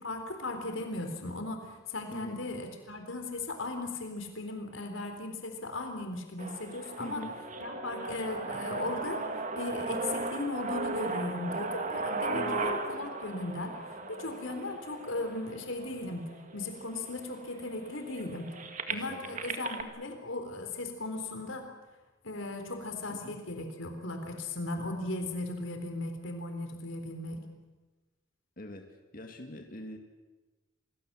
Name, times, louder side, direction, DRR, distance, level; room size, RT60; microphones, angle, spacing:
voice 1, 0.0-7.2 7.6-16.3 16.5-18.5 18.9-21.7 22.2-27.4, left 2 dB, 85° left, 5 dB, 3.8 m, -37 dB
voice 2, 2.1-2.4 7.0-7.4 12.3-12.7 18.9-19.4 23.1-23.4 28.6-30.0, left 1 dB, 45° left, 4 dB, 2.2 m, -43 dB
sound 1, 6.4-16.3 17.0-17.1 17.3-19.8, right 3 dB, 40° right, 2.0 m, -36 dB
sound 2, 10.7-19.5, right 2 dB, 70° right, 5.5 m, -55 dB
27.5 x 20.0 x 7.6 m, 1.1 s
head